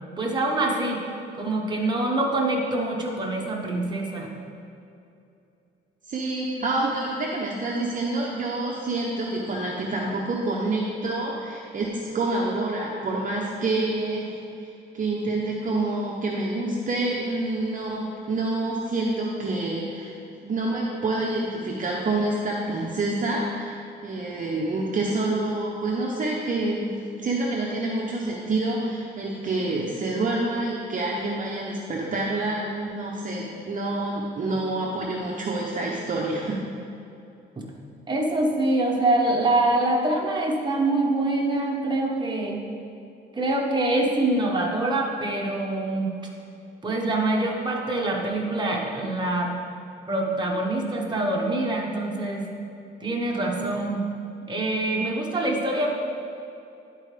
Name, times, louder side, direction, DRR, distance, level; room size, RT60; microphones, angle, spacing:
voice 1, 0.2-1.0 1.4-4.3 37.6-37.7 38.1-42.6 43.3-46.1 46.8-49.5 50.1-52.5 53.0-54.1 54.5-56.0, right 2 dB, 20° right, -1 dB, 1.2 m, -25 dB
voice 2, 6.1-14.3 14.6-20.1 20.4-36.6, right 2 dB, 40° right, -3 dB, 0.9 m, -27 dB
10.5 x 4.6 x 3.3 m, 2.7 s
cardioid pair, 90°, 20 cm